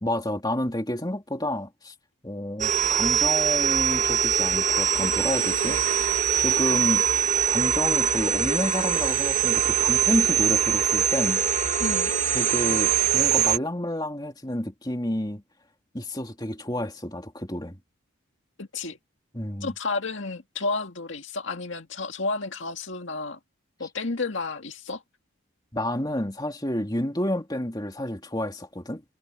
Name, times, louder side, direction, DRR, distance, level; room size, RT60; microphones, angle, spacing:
voice 1, 0.0-1.9 2.2-5.8 6.4-7.0 7.5-11.4 12.3-15.4 15.9-17.8 19.3-19.7 25.7-29.0, left 1 dB, 20° left, 2.8 m, -29 dB
sound 1, 2.6-13.6, right 8 dB, 35° right, 1.6 m, -23 dB
voice 2, 18.6-19.0 19.6-23.4 23.8-25.0, left 3 dB, 65° left, 2.1 m, -31 dB
head